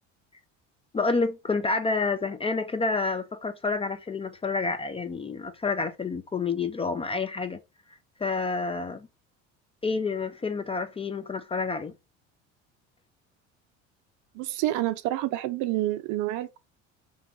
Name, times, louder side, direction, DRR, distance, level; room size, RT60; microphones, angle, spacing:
voice 1, 0.9-7.6 7.9-9.1 9.8-11.9, left 4 dB, 15° left, 0.4 m, -29 dB
voice 2, 14.3-16.6, right 15 dB, 55° right, 0.5 m, -28 dB
2.4 x 2.3 x 3.8 m
hypercardioid pair, 70°, 36 cm